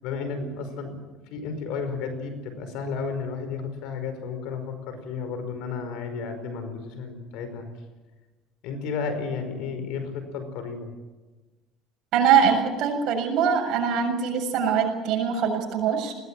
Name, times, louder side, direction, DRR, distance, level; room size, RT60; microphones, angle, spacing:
voice 1, 0.0-0.9 1.3-7.7 8.6-10.9, left 5 dB, 80° left, 9 dB, 5.3 m, -32 dB
voice 2, 12.1-16.1, right 7 dB, 65° right, 2 dB, 7.2 m, -22 dB
20.5 x 18.5 x 9.1 m, 1.2 s
cardioid pair, 115°, 0 cm